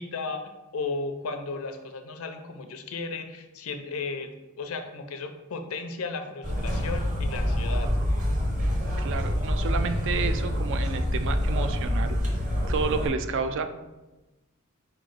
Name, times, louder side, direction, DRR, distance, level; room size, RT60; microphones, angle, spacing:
voice 1, 0.0-4.3 4.6-7.9, left 4 dB, 85° left, 6 dB, 0.6 m, -35 dB
sound 1, 6.4-13.1, equal, 35° right, 1.0 m, -26 dB
voice 2, 9.0-12.2 12.7-13.7, right 5 dB, 60° right, 9 dB, 0.4 m, -30 dB
4.3 x 3.1 x 3.9 m, 1.1 s
head